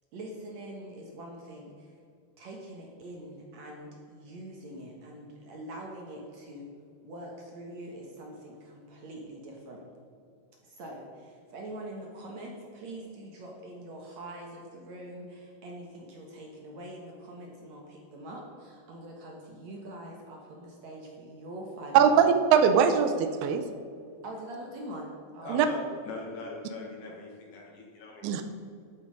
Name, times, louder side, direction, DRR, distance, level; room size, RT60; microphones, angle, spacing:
voice 1, 0.1-1.9 2.4-6.7 7.0-9.8 10.6-22.4 24.2-25.7 27.1-27.2, right 1 dB, 60° right, 0 dB, 2.2 m, -44 dB
voice 2, 21.9-23.6 25.5-25.7 28.2-28.5, right 7 dB, 85° right, 8 dB, 2.8 m, -21 dB
voice 3, 25.4-28.3, left 2 dB, 60° left, 0 dB, 2.8 m, -41 dB
12.5 x 8.3 x 5.2 m, 2.4 s
omnidirectional pair, 4.5 m